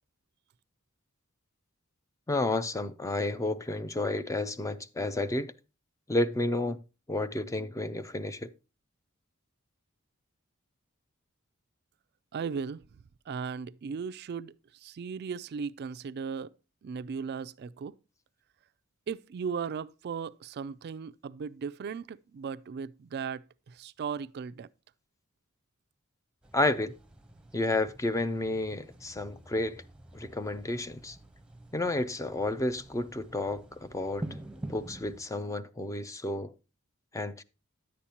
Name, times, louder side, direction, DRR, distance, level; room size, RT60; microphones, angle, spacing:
voice 1, 2.3-5.5 6.1-6.8 7.1-8.5 26.5-26.9 27.5-29.8 30.1-31.2 31.7-34.3 34.7-36.5 37.1-37.4, left 2 dB, 15° left, 0.4 m, -31 dB
voice 2, 12.3-12.8 13.3-16.5 16.8-17.9 19.1-24.7, right 6 dB, 50° right, 0.3 m, -37 dB
sound 1, 26.4-35.2, right 1 dB, 5° right, 0.8 m, -47 dB
10.5 x 8.5 x 2.8 m
head